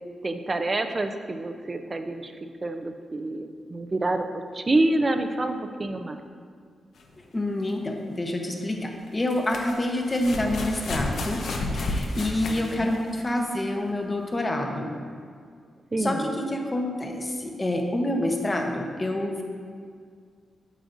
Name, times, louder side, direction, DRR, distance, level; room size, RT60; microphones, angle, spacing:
voice 1, 0.2-2.3 2.6-4.3 4.5-6.2 12.5-12.9 15.9-16.3, right 2 dB, 30° right, 7 dB, 0.5 m, -27 dB
sound 1, 7.0-7.1 9.1-13.3 14.3-14.4, left 2 dB, 70° left, 0.8 m, -31 dB
voice 2, 7.3-11.4 11.7-15.0 16.0-19.4, left 1 dB, 25° left, 2 dB, 0.9 m, -27 dB
9.9 x 7.5 x 2.6 m, 2.1 s
cardioid pair, 100°, 0 cm